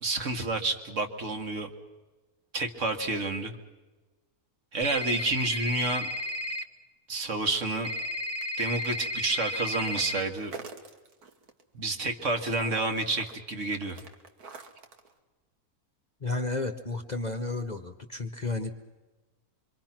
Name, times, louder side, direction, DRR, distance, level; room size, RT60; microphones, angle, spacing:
voice 1, 0.0-1.7 2.5-3.5 4.7-6.1 7.1-7.9 8.6-10.5 11.7-14.0, right 2 dB, 55° right, 5 dB, 1.9 m, -29 dB
sound 1, 4.8-6.6 7.8-10.2, left 1 dB, 25° right, 1.0 m, -33 dB
sound 2, 9.8-11.6 11.9-15.1, right 4 dB, 80° right, 2.1 m, -46 dB
voice 2, 16.2-18.7, left 3 dB, 35° left, 7 dB, 0.9 m, -32 dB
25.5 x 24.0 x 5.9 m, 1.2 s
omnidirectional pair, 1.6 m